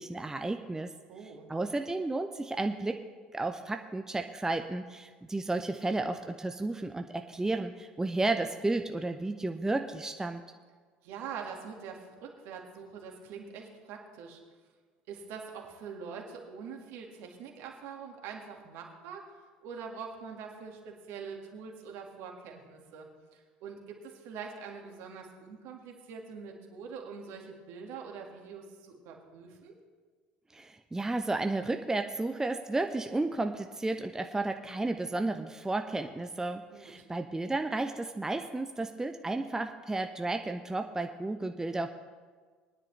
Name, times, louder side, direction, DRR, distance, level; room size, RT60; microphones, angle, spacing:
voice 1, 0.0-0.9 1.5-3.0 3.3-10.4 30.5-41.9, right 2 dB, 10° right, 6 dB, 0.6 m, -32 dB
voice 2, 1.1-1.5 11.0-14.4 15.1-19.3 19.6-29.8 36.7-37.0, right 6 dB, 60° right, 1 dB, 1.9 m, -44 dB
21.0 x 10.0 x 3.3 m, 1.5 s
figure-of-eight pair, 65°, 5 cm